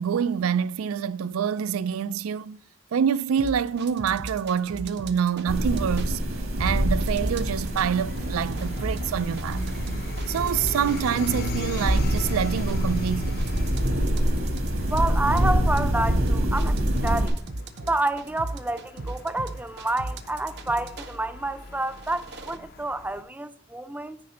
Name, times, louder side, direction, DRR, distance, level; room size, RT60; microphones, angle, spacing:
voice 1, 0.0-2.6 2.9-6.2 6.6-9.6 10.3-13.5, right 7 dB, 90° right, 0.4 m, -26 dB
sound 1, 3.4-23.2, left 4 dB, 50° left, 0.6 m, -41 dB
sound 2, 3.4-6.1 6.6-7.9 8.2-21.2 21.7-22.6, right 2 dB, 55° right, 0.7 m, -36 dB
sound 3, 5.5-17.3, equal, 75° right, 1.6 m, -26 dB
voice 2, 14.9-16.8 17.0-17.4 17.9-24.2, right 2 dB, 10° right, 0.4 m, -28 dB
9.7 x 4.2 x 6.4 m
head